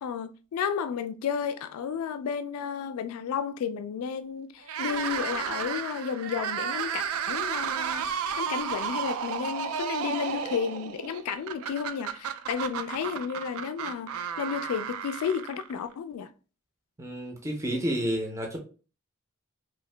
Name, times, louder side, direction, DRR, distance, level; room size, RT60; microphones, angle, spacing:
voice 1, 0.0-8.1 8.4-16.3, left 7 dB, 90° left, 0.3 m, -32 dB
sound 1, 4.6-15.9, right 7 dB, 75° right, 0.4 m, -33 dB
voice 2, 17.0-18.6, equal, 15° right, 0.5 m, -30 dB
2.8 x 2.7 x 3.2 m
head